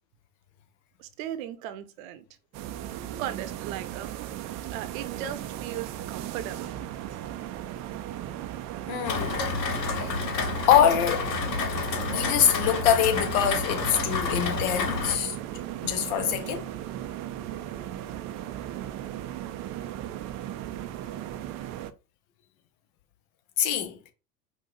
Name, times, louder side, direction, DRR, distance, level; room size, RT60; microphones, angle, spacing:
voice 1, 1.0-2.2 3.0-4.1 4.7-6.7, right 11 dB, 55° right, 0.9 m, -37 dB
sound 1, 2.5-21.9, right 12 dB, 35° right, 0.5 m, -36 dB
voice 2, 8.9-9.4 9.9-10.1 10.7-11.3 12.1-15.4 15.8-16.7 23.6-24.1, left 9 dB, 55° left, 1.2 m, -24 dB
Rain, 9.0-15.1, left 4 dB, 85° left, 1.0 m, -30 dB
5.2 x 2.6 x 3.9 m
hypercardioid pair, 85°, 49 cm